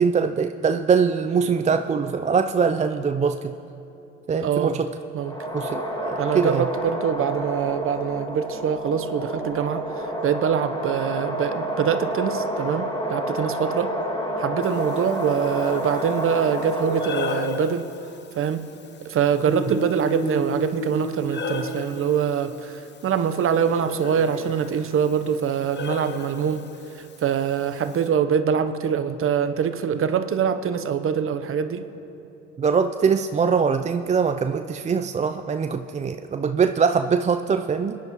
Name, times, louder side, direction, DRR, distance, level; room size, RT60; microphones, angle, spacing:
voice 1, 0.0-3.5 4.3-4.9 5.5-6.7 19.5-19.6 32.6-38.0, right 6 dB, 20° right, 7 dB, 0.5 m, -22 dB
voice 2, 4.4-4.8 5.1-5.4 6.2-9.8 10.2-13.9 14.4-17.8 18.4-18.6 19.0-26.6 27.0-31.8, right 7 dB, 40° right, 10 dB, 0.9 m, -24 dB
sound 1, 5.2-17.6, right 1 dB, 15° left, 2.2 m, -29 dB
Breathing, 14.6-28.1, left 5 dB, 35° left, 1.0 m, -37 dB
sound 2, 19.4-22.4 23.4-24.6, equal, 90° left, 1.8 m, -32 dB
25.0 x 10.5 x 3.0 m, 2.8 s
hypercardioid pair, 65°, 33 cm